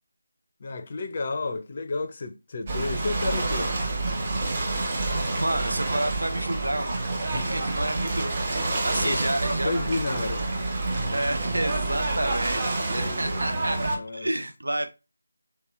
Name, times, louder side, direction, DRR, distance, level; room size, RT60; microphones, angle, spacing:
voice 1, 0.6-3.7 7.3-7.6 8.8-10.8 12.9-14.3, left 3 dB, 35° left, 0.5 m, -32 dB
Ocean / Boat Water vehicle, 2.7-14.0, right 2 dB, 30° right, 0.7 m, -28 dB
voice 2, 5.3-7.0 7.3-9.7 11.1-14.9, right 1 dB, 75° right, 0.5 m, -30 dB
3.1 x 2.9 x 3.1 m
figure-of-eight pair, 165°, 0 cm